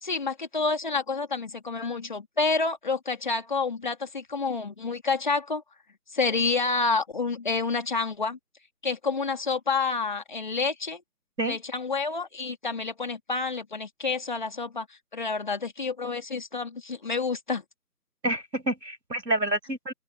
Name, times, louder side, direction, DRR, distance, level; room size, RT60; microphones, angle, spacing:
voice 1, 0.0-5.6 6.1-8.4 8.8-11.0 11.4-17.6, left 4 dB, 30° left, 3.3 m, -29 dB
voice 2, 18.2-19.9, right 1 dB, 85° right, 7.4 m, -28 dB
open air
figure-of-eight pair, 170°, 49 cm